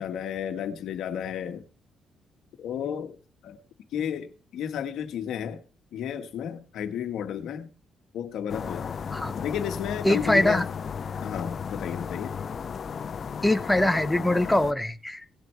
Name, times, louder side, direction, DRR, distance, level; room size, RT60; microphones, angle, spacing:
voice 1, 0.0-1.6 2.6-3.2 3.4-3.6 3.9-5.6 5.9-7.7 8.1-9.0 9.4-10.7 11.2-12.3, left 9 dB, 80° left, 1.6 m, -32 dB
sound 1, 8.5-14.7, left 6 dB, 50° left, 0.7 m, -34 dB
voice 2, 10.0-10.6 13.4-15.3, left 1 dB, 5° left, 0.9 m, -23 dB
18.5 x 7.7 x 3.4 m
cardioid pair, 90°, 0 cm